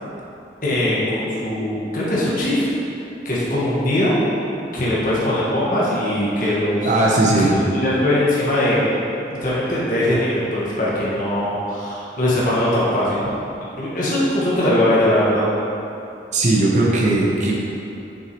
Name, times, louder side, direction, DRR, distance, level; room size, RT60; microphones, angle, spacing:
voice 1, 0.6-2.7 3.2-4.2 4.7-6.9 7.7-8.9 9.3-13.2 13.8-15.5, left 1 dB, 45° left, -8 dB, 1.5 m, -20 dB
voice 2, 6.8-7.5 16.3-17.5, right 2 dB, 40° right, -4 dB, 0.8 m, -17 dB
7.0 x 6.3 x 3.0 m, 2.8 s
head